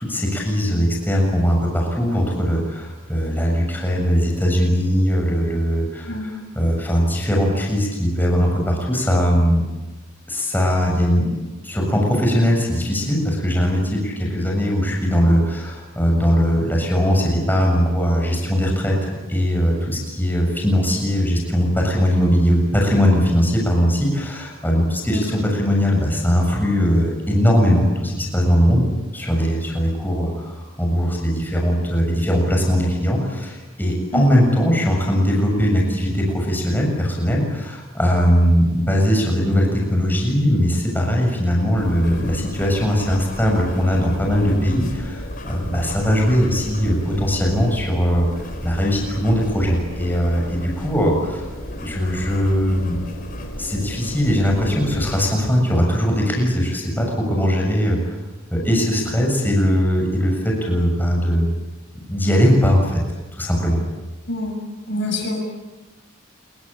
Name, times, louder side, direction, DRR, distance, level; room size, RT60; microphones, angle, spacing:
voice 1, 0.0-9.7 10.3-11.3 11.6-28.9 29.1-48.3 48.6-51.5 51.8-53.0 53.6-58.2 58.5-61.5 62.1-63.0 63.4-63.8, equal, 10° left, 0 dB, 7.1 m, -20 dB
sound 1, 41.8-55.2, equal, 45° left, 4.6 m, -33 dB
voice 2, 64.9-65.4, left 1 dB, 60° left, 2 dB, 7.3 m, -25 dB
27.5 x 23.0 x 8.9 m, 1.1 s
head